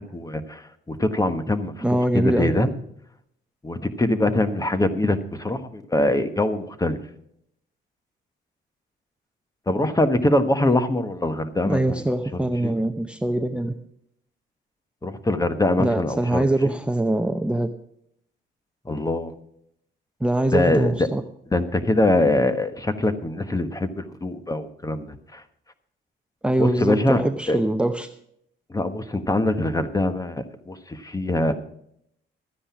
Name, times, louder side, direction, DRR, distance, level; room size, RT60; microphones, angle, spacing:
voice 1, 0.1-1.7 2.1-2.7 3.6-7.0 9.7-12.0 12.3-12.7 15.0-16.7 18.8-19.3 20.5-21.1 21.5-25.4 26.6-27.2 27.5-27.6 28.7-31.5, left 1 dB, 15° left, 11 dB, 1.3 m, -23 dB
voice 2, 1.8-2.5 11.6-13.7 15.8-17.7 20.2-21.2 26.4-28.1, right 1 dB, 5° right, 7 dB, 0.7 m, -23 dB
13.0 x 9.9 x 5.9 m, 0.72 s
cardioid pair, 90°, 20 cm